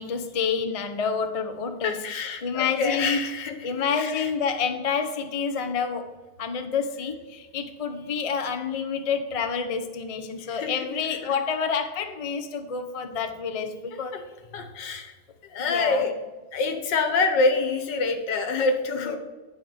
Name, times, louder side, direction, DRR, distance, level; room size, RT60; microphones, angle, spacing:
voice 1, 0.0-2.0 2.4-3.2 3.6-6.1 6.4-14.2 15.7-16.0 19.0-19.2, left 6 dB, 40° left, 6 dB, 0.4 m, -28 dB
voice 2, 1.8-4.3 10.4-10.7 11.0-11.3 14.1-14.2 14.5-15.1 15.4-16.1 16.5-19.2, left 3 dB, 85° left, 6 dB, 1.8 m, -26 dB
9.4 x 4.7 x 6.4 m, 1.3 s
omnidirectional pair, 1.9 m